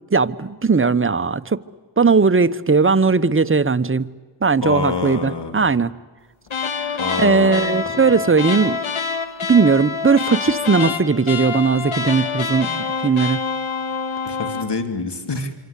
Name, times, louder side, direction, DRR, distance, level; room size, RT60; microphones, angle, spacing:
voice 1, 0.1-1.6 2.0-4.1 4.4-5.9 7.2-8.8 9.5-13.4, right 4 dB, 25° right, 1.0 m, -18 dB
voice 2, 4.6-5.7 7.0-7.9 14.3-15.5, left 4 dB, 55° left, 3.3 m, -26 dB
sound 1, 6.5-14.7, left 5 dB, 70° left, 1.9 m, -26 dB
26.5 x 25.0 x 8.4 m
cardioid pair, 45°, 50 cm